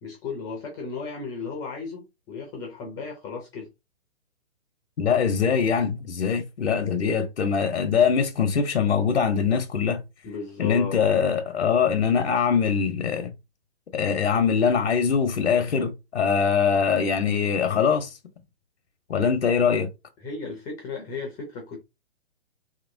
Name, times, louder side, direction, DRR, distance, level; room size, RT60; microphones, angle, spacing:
voice 1, 0.0-3.7 10.2-11.0 20.2-21.8, left 4 dB, 10° left, 0.4 m, -35 dB
voice 2, 5.0-10.0 10.6-13.3 13.9-18.2 19.1-19.9, left 6 dB, 85° left, 0.7 m, -23 dB
3.0 x 2.9 x 2.5 m
hypercardioid pair, 135°, 33 cm